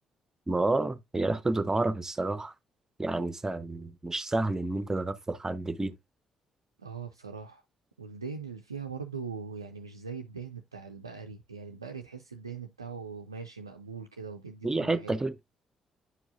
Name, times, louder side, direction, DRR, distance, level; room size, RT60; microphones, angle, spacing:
voice 1, 0.5-2.5 3.0-6.0 14.6-15.4, right 2 dB, 20° right, 0.7 m, -29 dB
voice 2, 6.8-7.6 8.0-15.2, right 5 dB, 90° right, 0.3 m, -41 dB
9.6 x 4.7 x 2.4 m
figure-of-eight pair, 40°, 2 cm